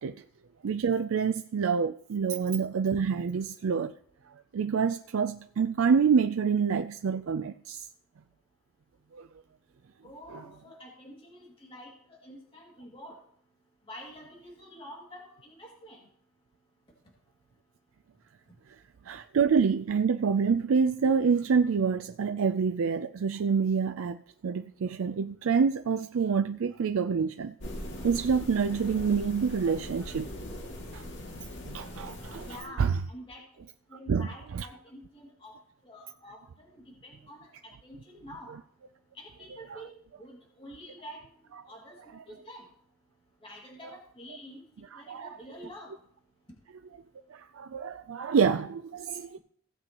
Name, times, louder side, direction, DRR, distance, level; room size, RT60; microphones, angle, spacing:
voice 1, 0.6-3.9 4.5-7.8 9.1-9.3 19.1-24.2 24.4-27.5 28.0-30.3 30.9-31.0 31.7-32.5 32.8-32.9 34.1-34.3 34.5-34.7 45.1-45.3 47.3-49.4, right 6 dB, 80° right, 0.4 m, -27 dB
voice 2, 10.0-13.2 13.9-16.1 32.4-33.4 33.9-35.5 35.8-38.5 39.1-39.9 40.2-41.2 41.6-42.6 43.4-44.6 44.9-45.9, equal, 25° left, 2.3 m, -47 dB
sound 1, 27.6-32.6, left 1 dB, 60° left, 2.2 m, -40 dB
16.5 x 7.8 x 3.0 m
head